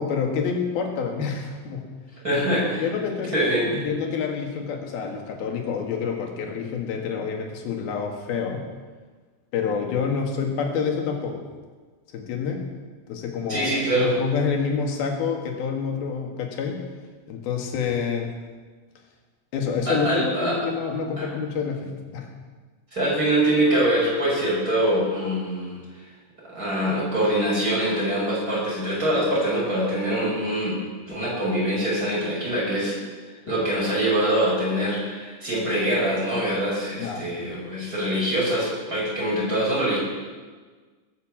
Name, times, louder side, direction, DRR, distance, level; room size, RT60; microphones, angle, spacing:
voice 1, 0.0-1.9 2.8-3.3 3.7-8.7 9.5-11.5 12.1-12.7 13.1-16.8 17.3-18.3 19.5-22.3 33.5-33.6 37.0-37.3, left 6 dB, 65° left, 2 dB, 3.5 m, -28 dB
voice 2, 2.2-2.8 3.2-3.9 13.5-14.2 19.9-20.6 21.2-21.3 22.9-25.8 26.4-30.8 31.1-33.0 33.5-40.0, right 1 dB, 20° right, -6 dB, 6.6 m, -24 dB
20.0 x 8.3 x 7.4 m, 1.4 s
omnidirectional pair, 5.0 m